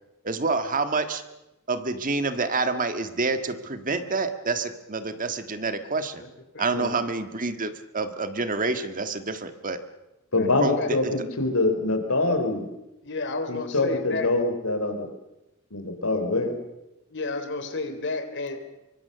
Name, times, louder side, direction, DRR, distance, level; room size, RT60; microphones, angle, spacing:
voice 1, 0.2-1.2 1.7-6.2 6.6-9.8 10.6-11.1, right 3 dB, 40° right, 9 dB, 1.7 m, -28 dB
voice 2, 10.3-12.7 13.5-15.1 15.7-16.5, left 2 dB, 90° left, 6 dB, 4.0 m, -24 dB
voice 3, 13.0-14.3 17.1-18.6, left 3 dB, 60° left, 8 dB, 3.3 m, -31 dB
25.0 x 24.0 x 6.8 m, 0.96 s
head